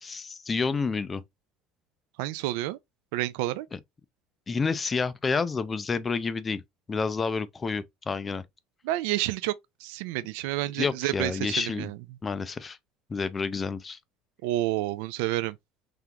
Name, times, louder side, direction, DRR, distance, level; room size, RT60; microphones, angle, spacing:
voice 1, 0.0-1.2 4.5-6.6 6.9-8.4 10.8-11.9 12.2-12.8 13.1-14.0, left 4 dB, 15° left, 0.3 m, -29 dB
voice 2, 2.2-2.8 3.1-3.7 8.8-9.5 9.8-12.0 14.4-15.6, right 16 dB, 75° right, 0.4 m, -29 dB
3.7 x 3.4 x 2.9 m
cardioid pair, 170°, 0 cm